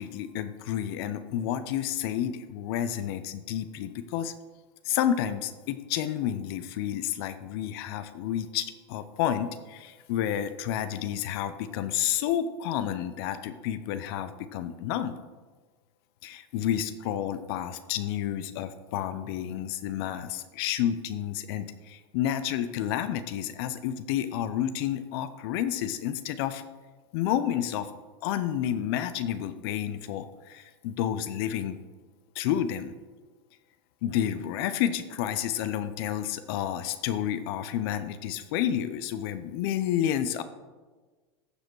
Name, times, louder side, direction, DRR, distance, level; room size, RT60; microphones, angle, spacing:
voice 1, 0.0-4.3 4.8-15.2 16.2-26.6 27.1-27.9 28.2-31.8 32.3-32.9 34.0-40.4, left 10 dB, 65° left, 11 dB, 0.6 m, -30 dB
15.0 x 5.0 x 4.6 m, 1.3 s
hypercardioid pair, 100°, 14 cm